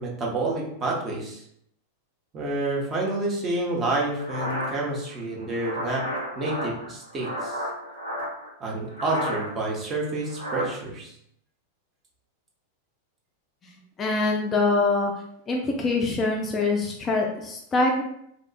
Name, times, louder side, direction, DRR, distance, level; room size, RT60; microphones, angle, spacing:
voice 1, 0.0-1.4 2.3-6.0 6.4-7.6 8.6-11.1, right 2 dB, 25° right, -3 dB, 0.8 m, -28 dB
sound 1, 4.2-8.5 8.9-9.7 10.0-10.7, equal, 85° right, 0.7 m, -33 dB
voice 2, 14.0-15.1 15.5-18.0, left 3 dB, 20° left, 0 dB, 0.4 m, -24 dB
2.8 x 2.3 x 2.3 m, 0.72 s
figure-of-eight pair, 90°, 0 cm